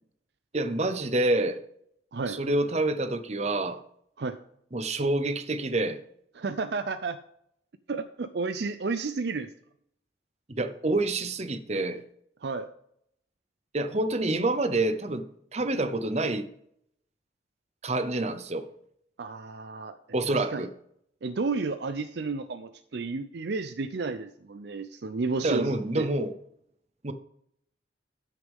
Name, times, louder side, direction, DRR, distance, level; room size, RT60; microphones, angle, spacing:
voice 1, 0.5-1.6 2.3-3.8 4.7-6.0 10.5-12.0 13.7-15.2 15.5-16.5 17.8-18.7 20.1-20.7 25.4-26.3 27.0-27.1, right 2 dB, 35° right, 0.8 m, -27 dB
voice 2, 6.4-7.2 7.9-9.5 12.4-12.7 19.2-20.0 20.3-20.7 21.2-26.1, right 4 dB, 60° right, 0.5 m, -32 dB
13.5 x 6.5 x 3.6 m
head